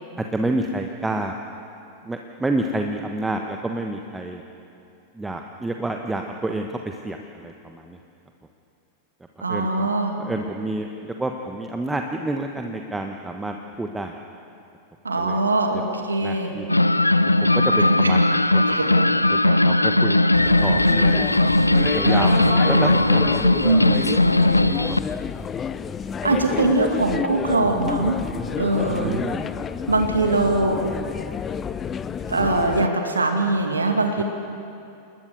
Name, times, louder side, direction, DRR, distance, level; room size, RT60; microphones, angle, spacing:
voice 1, 0.2-1.3 2.0-4.4 5.1-8.0 9.4-9.9 10.2-14.1 15.2-15.4 16.2-16.7 17.6-18.2 18.5-18.8 19.3-20.2 20.6-21.3 21.9-23.8 24.6-25.2 28.6-29.4 34.2-34.3, right 2 dB, 10° right, 4 dB, 1.3 m, -29 dB
voice 2, 9.4-10.2 15.0-16.5 18.0-18.1 18.7-19.0 23.2-24.0 26.2-28.2 28.6-29.2 29.9-30.8 32.3-34.2, right 2 dB, 75° right, 4 dB, 2.3 m, -22 dB
sound 1, 16.7-25.0, left 2 dB, 85° left, 0.5 m, -18 dB
sound 2, 20.3-32.9, left 7 dB, 20° left, 0.7 m, -30 dB
28.5 x 20.0 x 6.9 m, 2.6 s
figure-of-eight pair, 90°, 0 cm